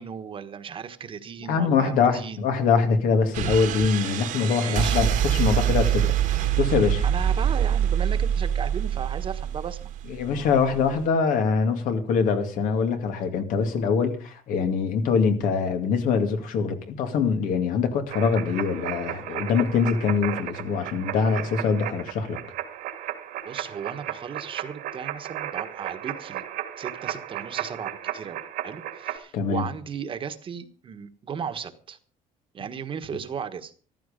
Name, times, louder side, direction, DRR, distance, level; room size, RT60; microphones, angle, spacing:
voice 1, 0.0-2.4 4.6-5.0 7.0-9.9 23.4-26.4 26.8-32.0 32.5-33.7, right 7 dB, 40° right, 1.4 m, -36 dB
voice 2, 1.5-7.0 10.1-22.4 29.3-29.7, left 5 dB, 75° left, 2.5 m, -24 dB
sound 1, 3.3-11.1, right 10 dB, 70° right, 1.7 m, -25 dB
sound 2, 18.1-29.2, right 12 dB, 85° right, 2.5 m, -34 dB
14.5 x 13.5 x 5.2 m
cardioid pair, 140°, 14 cm